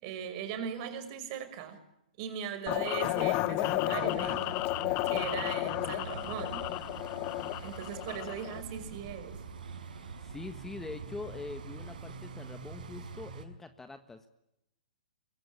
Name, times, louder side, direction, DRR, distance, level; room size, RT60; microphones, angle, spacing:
voice 1, 0.0-1.8 2.2-4.6 5.0-6.7 7.6-9.4, right 8 dB, 40° right, 10 dB, 5.9 m, -39 dB
sound 1, 2.7-8.6, left 18 dB, 35° left, 1.1 m, -32 dB
sound 2, 3.4-12.2, right 5 dB, 90° right, 5.4 m, -52 dB
sound 3, 4.0-13.4, right 5 dB, 70° right, 5.2 m, -45 dB
voice 2, 9.8-14.3, left 3 dB, 5° left, 9 dB, 1.4 m, -44 dB
24.0 x 22.0 x 8.7 m, 0.85 s
hypercardioid pair, 140°, 5 cm